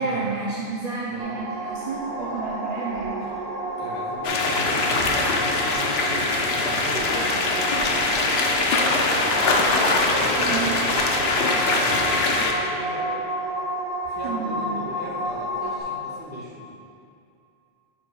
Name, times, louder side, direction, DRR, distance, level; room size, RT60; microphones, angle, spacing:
voice 1, 0.0-3.3 10.4-10.7 14.2-14.7, right 4 dB, 45° right, -4 dB, 0.7 m, -30 dB
voice 2, 1.1-1.4 3.8-8.0 8.5-13.1 14.1-16.7, equal, 10° right, -7 dB, 1.4 m, -38 dB
sound 1, 1.2-15.8, right 1 dB, 80° right, 1.1 m, -31 dB
sound 2, 4.2-12.5, left 3 dB, 75° left, 0.9 m, -22 dB
10.5 x 5.4 x 2.3 m, 2.5 s
omnidirectional pair, 1.0 m